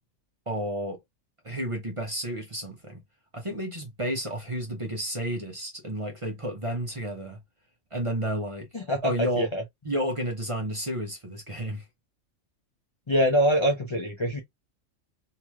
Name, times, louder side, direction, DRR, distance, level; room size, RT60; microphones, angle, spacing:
voice 1, 0.5-1.0 1.4-3.0 3.3-7.4 7.9-9.5 9.8-11.8, right 1 dB, 30° right, 0.7 m, -31 dB
voice 2, 8.7-9.6 13.1-14.4, equal, 40° left, 0.4 m, -24 dB
3.1 x 2.9 x 2.3 m
omnidirectional pair, 1.4 m